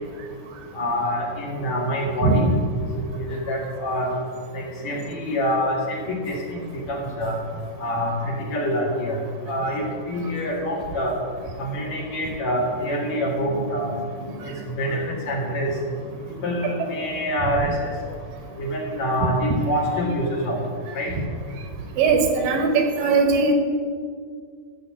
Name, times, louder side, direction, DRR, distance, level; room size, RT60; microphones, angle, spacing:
voice 1, 0.7-2.5 2.9-4.1 4.5-6.6 6.9-7.4 7.8-9.2 9.5-11.1 11.6-13.9 14.4-15.7 16.3-17.9 18.6-20.6 20.9-21.1, equal, 55° left, -2 dB, 2.9 m, -26 dB
voice 2, 22.0-23.5, right 4 dB, 70° right, 4 dB, 2.7 m, -19 dB
13.0 x 7.5 x 7.5 m, 2.1 s
omnidirectional pair, 4.3 m